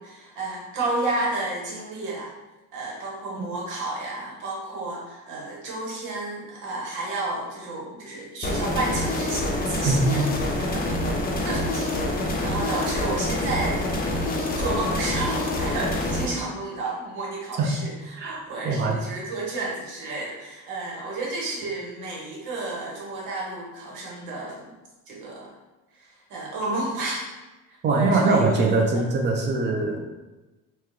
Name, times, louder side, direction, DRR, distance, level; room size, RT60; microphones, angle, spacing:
voice 1, 0.0-2.3 2.7-13.8 14.2-24.7 25.1-25.5 25.9-27.3 27.7-28.8 29.9-30.0, right 2 dB, 85° right, -4 dB, 1.3 m, -31 dB
sound 1, 8.4-16.3, left 1 dB, 30° left, 0.6 m, -26 dB
voice 2, 9.9-10.3 17.6-17.8 18.2-19.0 27.8-30.0, right 3 dB, 35° right, 1 dB, 0.7 m, -22 dB
4.2 x 2.4 x 3.2 m, 1.1 s
cardioid pair, 130°, 30 cm